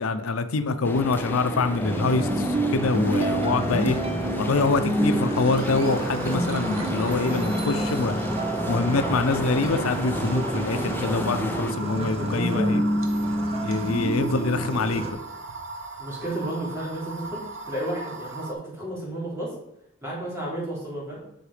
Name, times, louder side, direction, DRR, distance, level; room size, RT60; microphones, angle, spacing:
voice 1, 0.0-4.0 4.4-8.2 8.7-12.8 13.6-15.2, left 3 dB, 90° left, 10 dB, 0.6 m, -25 dB
sound 1, 0.8-11.7, left 1 dB, 10° left, 0.7 m, -32 dB
sound 2, 1.8-15.1, right 1 dB, 30° right, 0.9 m, -28 dB
sound 3, 5.5-18.5, right 3 dB, 70° right, 1.3 m, -38 dB
voice 2, 11.8-12.8 14.3-14.4 16.0-17.4 17.7-19.6 20.0-21.2, right 1 dB, 15° right, -5 dB, 3.5 m, -32 dB
7.9 x 5.8 x 5.0 m, 0.83 s
head